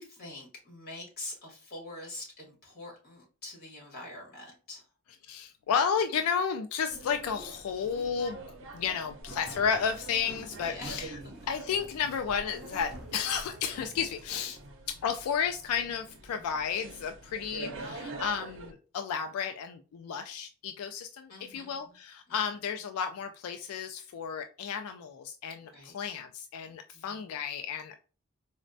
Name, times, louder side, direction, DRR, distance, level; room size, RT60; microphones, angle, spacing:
voice 1, 0.0-4.8 10.6-11.0 21.3-21.8 25.7-25.9 26.9-27.0, left 2 dB, 45° left, 1.6 m, -44 dB
voice 2, 5.3-8.4 8.7-11.2 11.5-14.6 14.9-28.0, left 7 dB, 90° left, 0.3 m, -32 dB
sound 1, 6.9-18.7, right 2 dB, 60° right, 0.6 m, -46 dB
sound 2, 9.2-14.7, equal, 5° right, 0.6 m, -50 dB
4.1 x 2.1 x 2.5 m
head